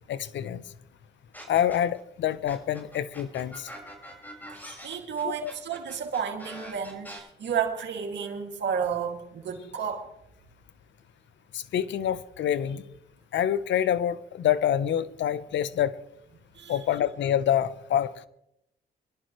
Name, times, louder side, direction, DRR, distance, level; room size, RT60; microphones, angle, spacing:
voice 1, 0.1-0.6 1.5-3.7 5.2-5.5 11.5-12.8 13.3-16.0 16.7-18.1, left 10 dB, 75° left, 0.8 m, -26 dB
sound 1, 1.3-2.0 2.5-7.2, equal, 10° left, 5.4 m, -44 dB
voice 2, 4.5-10.1 16.5-16.8, right 7 dB, 70° right, 2.4 m, -32 dB
23.5 x 11.5 x 3.1 m
supercardioid pair, 60°, 19 cm